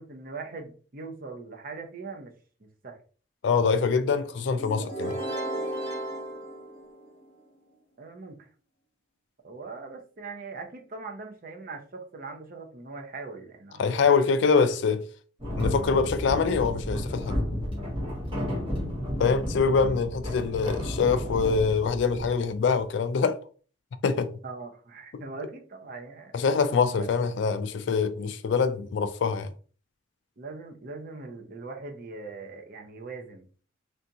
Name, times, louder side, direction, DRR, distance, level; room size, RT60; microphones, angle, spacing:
voice 1, 0.0-2.3 2.6-3.0 8.0-8.5 9.4-13.9 24.4-26.4 27.0-27.1 30.4-33.4, right 4 dB, 45° right, 0.6 m, -41 dB
voice 2, 3.4-5.2 13.8-15.0 15.6-17.4 19.2-23.4 24.0-24.3 26.3-29.5, left 5 dB, 60° left, 0.3 m, -24 dB
sound 1, 4.6-7.4, right 1 dB, 30° left, 0.9 m, -34 dB
sound 2, 15.4-22.8, equal, 25° right, 1.0 m, -32 dB
3.3 x 2.6 x 2.7 m
head